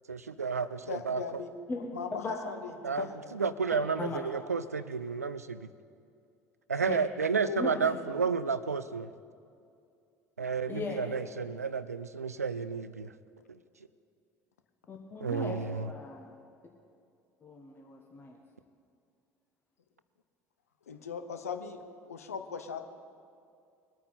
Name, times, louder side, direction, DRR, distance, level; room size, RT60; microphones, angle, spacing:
voice 1, 0.1-1.2 2.8-3.1 3.3-5.6 6.7-9.1 10.4-13.1 13.5-13.6 15.2-15.9, right 5 dB, 85° right, 14 dB, 0.4 m, -31 dB
voice 2, 0.8-1.5 1.9-3.2 7.4-8.1 20.9-22.8, left 6 dB, 75° left, 8 dB, 0.8 m, -39 dB
voice 3, 2.1-2.5 4.0-4.2 6.9-7.0 7.6-8.0 10.7-11.2 14.9-16.3 17.4-18.4, left 3 dB, 25° left, 0 dB, 1.4 m, -38 dB
21.0 x 9.0 x 4.2 m, 2.4 s
figure-of-eight pair, 65°, 8 cm